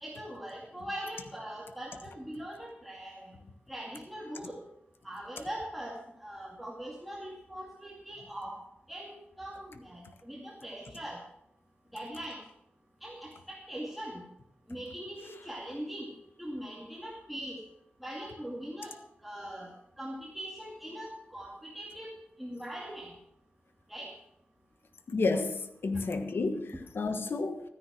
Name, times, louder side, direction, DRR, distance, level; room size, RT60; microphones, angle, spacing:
voice 1, 0.0-3.3 3.7-4.6 5.0-8.6 8.9-11.2 11.9-12.4 13.0-14.2 14.7-16.1 16.4-17.6 18.0-19.0 19.2-19.7 20.0-22.1 22.4-23.1 23.9-24.1, right 1 dB, ahead, 2.3 m, -41 dB
voice 2, 25.1-27.6, left 3 dB, 65° left, 1.3 m, -31 dB
13.5 x 10.0 x 6.1 m
wide cardioid pair, 105°, 4 cm